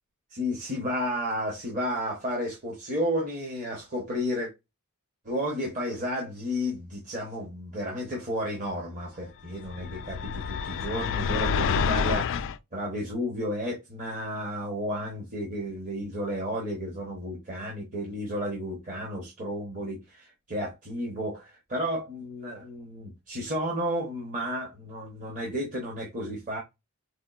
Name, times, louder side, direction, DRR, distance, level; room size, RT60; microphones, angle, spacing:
voice 1, 0.3-4.5 5.2-12.4 12.7-26.6, equal, 35° right, 0.9 m, -32 dB
sound 1, 9.6-12.6, left 6 dB, 60° left, 0.3 m, -28 dB
4.3 x 2.3 x 2.3 m
head